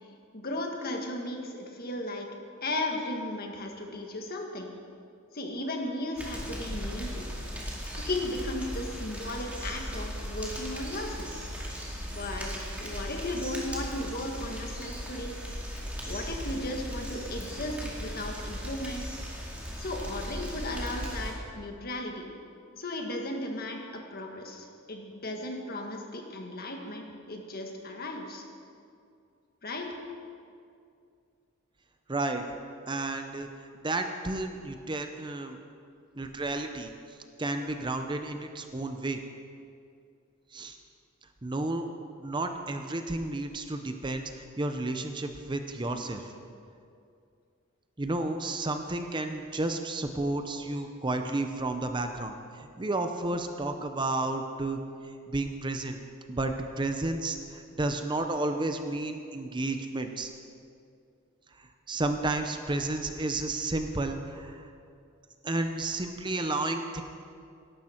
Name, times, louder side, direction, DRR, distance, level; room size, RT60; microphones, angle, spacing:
voice 1, 0.3-2.3 2.6-4.7 5.3-7.3 7.9-11.4 12.1-12.5 12.8-15.3 16.1-19.0 19.8-22.3 22.8-28.4 29.6-29.9, left 1 dB, 45° left, 2 dB, 1.6 m, -35 dB
sound 1, 6.2-21.3, equal, 5° right, 2.3 m, -37 dB
voice 2, 32.1-32.4 32.9-33.5 33.8-35.6 36.2-36.9 37.4-39.2 40.5-40.8 41.4-41.9 42.2-44.3 44.6-46.3 48.0-54.8 55.3-56.0 56.3-60.3 61.9-64.7 65.4-67.0, right 2 dB, 20° right, 6 dB, 0.6 m, -32 dB
17.0 x 12.0 x 4.4 m, 2.4 s
head